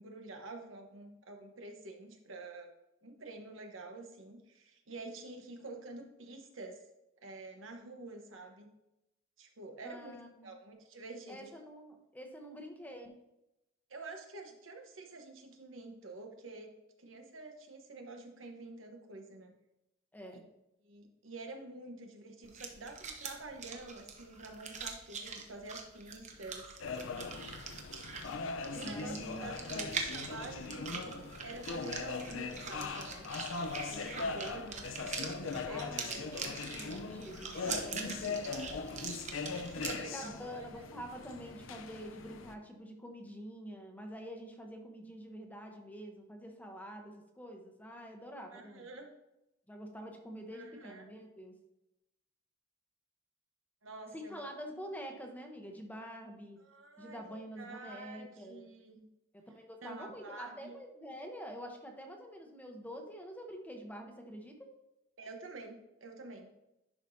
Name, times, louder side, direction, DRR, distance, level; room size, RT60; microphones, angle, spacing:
voice 1, 0.0-2.7 3.0-6.8 7.2-8.7 9.4-10.2 10.4-11.5 13.9-16.7 17.0-19.5 20.8-26.6 28.7-33.3 33.9-36.4 39.1-39.3 39.7-40.9 48.5-49.1 50.5-51.0 53.8-54.5 56.6-59.0 59.8-60.8 65.2-66.5, right 2 dB, 80° right, 3 dB, 1.1 m, -48 dB
voice 2, 9.8-10.5 11.3-13.1 20.1-20.4 28.8-29.9 35.7-38.6 39.9-48.9 49.7-51.5 54.1-56.6 57.0-58.6 59.3-64.7, equal, 10° left, 2 dB, 0.9 m, -47 dB
sound 1, 22.4-39.9, right 5 dB, 40° right, 0.9 m, -43 dB
sound 2, 26.8-42.5, left 4 dB, 80° left, 0.6 m, -40 dB
11.0 x 4.9 x 2.7 m, 0.89 s
head